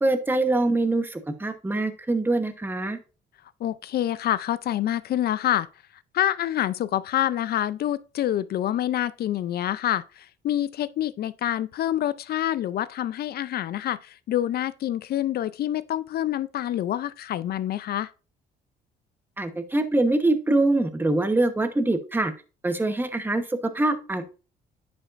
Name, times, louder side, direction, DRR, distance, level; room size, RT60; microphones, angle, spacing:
voice 1, 0.0-3.0 19.4-22.3 22.6-24.2, right 2 dB, 10° right, 1.0 m, -24 dB
voice 2, 3.6-5.7 6.1-18.1, left 12 dB, 55° left, 0.4 m, -27 dB
10.0 x 5.1 x 2.5 m
supercardioid pair, 75°, 19 cm